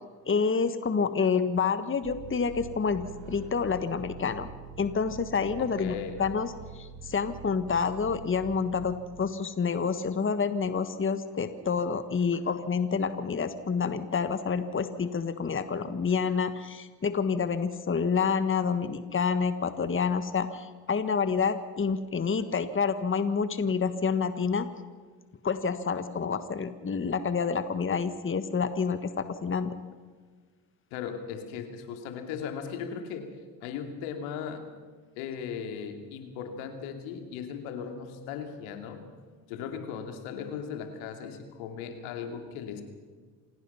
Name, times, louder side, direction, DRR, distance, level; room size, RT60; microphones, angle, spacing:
voice 1, 0.3-4.5 4.8-5.9 6.2-6.5 6.7-24.7 25.4-29.7, left 5 dB, 25° left, 11 dB, 1.5 m, -28 dB
sound 1, 2.0-9.4, right 5 dB, 75° right, 3.1 m, -45 dB
voice 2, 5.6-6.2 30.9-33.3 33.6-34.7 35.2-39.0 39.5-42.8, left 7 dB, 80° left, 5 dB, 2.8 m, -37 dB
27.0 x 17.5 x 5.8 m, 1.5 s
hypercardioid pair, 60°, 47 cm